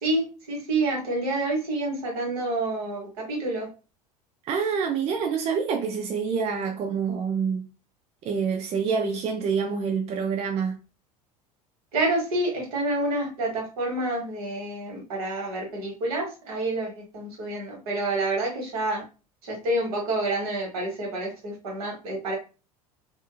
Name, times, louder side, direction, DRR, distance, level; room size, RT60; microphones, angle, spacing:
voice 1, 0.0-3.7 11.9-19.0 19.5-22.3, right 2 dB, 70° right, 1.2 m, -28 dB
voice 2, 4.4-7.6 8.2-10.8, right 6 dB, 35° right, 0.4 m, -27 dB
2.6 x 2.4 x 2.2 m
figure-of-eight pair, 70°, 20 cm